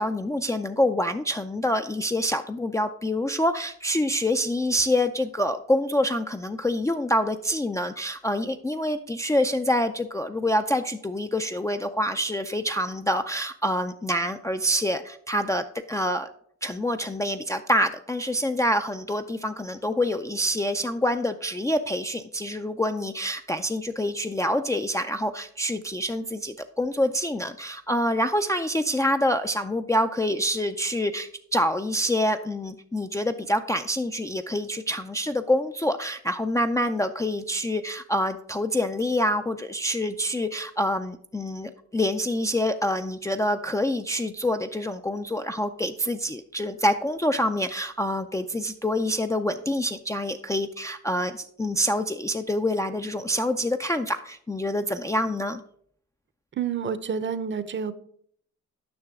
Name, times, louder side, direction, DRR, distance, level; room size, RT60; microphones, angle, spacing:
voice 1, 0.0-16.3 16.6-55.6, left 1 dB, 10° left, 6 dB, 0.4 m, -26 dB
voice 2, 56.6-57.9, right 7 dB, 40° right, 13 dB, 0.7 m, -29 dB
9.6 x 5.9 x 3.6 m, 0.63 s
cardioid pair, 90°, 30 cm